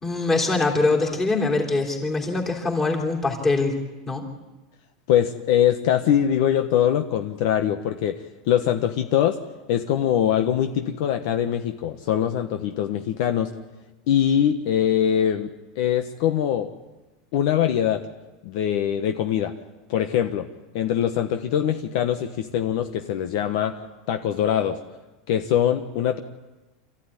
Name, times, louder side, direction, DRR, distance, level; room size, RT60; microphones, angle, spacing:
voice 1, 0.0-3.8 4.1-4.2, left 3 dB, 15° left, 0 dB, 3.4 m, -23 dB
voice 2, 5.1-8.2 8.5-9.4 9.7-13.5 14.1-15.5 15.8-16.7 17.3-18.0 18.4-19.5 19.9-20.5 20.7-23.8 24.1-24.8 25.3-26.2, left 10 dB, 55° left, 7 dB, 1.2 m, -22 dB
27.0 x 14.5 x 9.9 m, 1.1 s
supercardioid pair, 170°, 3 cm